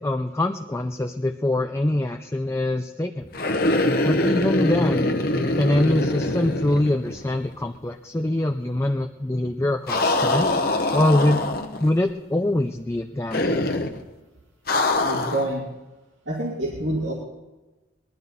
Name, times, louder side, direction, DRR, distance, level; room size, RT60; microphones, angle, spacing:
voice 1, 0.0-3.3 4.0-5.2 5.5-10.5 10.9-11.4 11.8-13.6, left 1 dB, 15° left, 5 dB, 0.4 m, -24 dB
sound 1, 3.3-7.5 7.7-7.8 9.9-11.9 13.3-14.0 14.7-15.5, left 2 dB, 50° left, 1.0 m, -23 dB
voice 2, 15.0-15.7 16.3-17.1, right 1 dB, 75° right, -4 dB, 2.4 m, -27 dB
20.0 x 12.0 x 4.1 m, 1.1 s
head